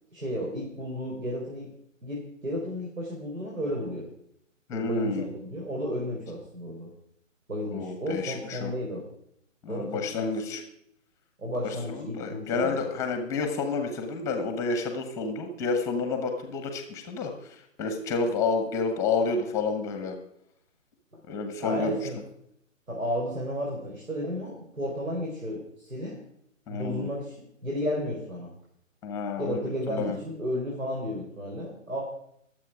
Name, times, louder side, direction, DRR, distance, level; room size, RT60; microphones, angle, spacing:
voice 1, 0.1-1.7 2.0-4.1 4.7-6.9 7.5-9.0 9.7-10.3 11.4-12.8 21.1-21.2 21.6-22.2 22.9-26.2 26.7-28.5 29.4-32.0, equal, 85° right, -2 dB, 4.6 m, -33 dB
voice 2, 4.7-5.2 7.7-8.7 9.6-10.6 11.6-20.2 21.3-22.0 26.7-27.1 29.0-30.2, left 4 dB, 5° left, 6 dB, 1.0 m, -30 dB
21.0 x 7.7 x 4.9 m, 0.73 s
figure-of-eight pair, 145°, 40 cm